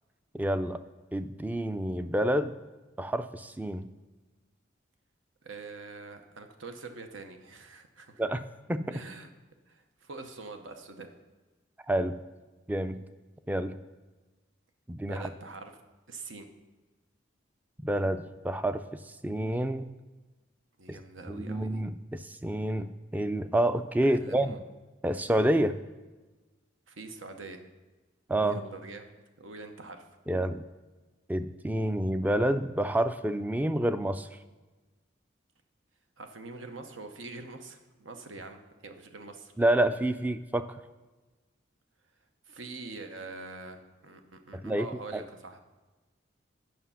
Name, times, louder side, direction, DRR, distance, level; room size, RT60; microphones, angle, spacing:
voice 1, 0.3-0.8 1.1-2.6 3.0-3.9 8.2-9.0 11.9-12.2 12.7-13.1 13.5-13.8 14.9-15.2 17.8-19.9 20.9-21.0 21.3-24.6 25.0-25.8 28.3-28.6 30.3-30.6 31.3-34.3 39.6-40.7 44.5-45.2, right 1 dB, 10° right, 11 dB, 0.3 m, -28 dB
voice 2, 5.4-8.2 8.9-9.3 9.7-11.1 15.0-15.7 16.1-16.5 20.8-21.8 24.0-24.6 26.9-27.7 28.4-29.1 29.4-30.1 36.2-39.5 42.5-45.6, right 3 dB, 90° right, 6 dB, 0.9 m, -44 dB
9.5 x 5.8 x 5.6 m, 1.2 s
head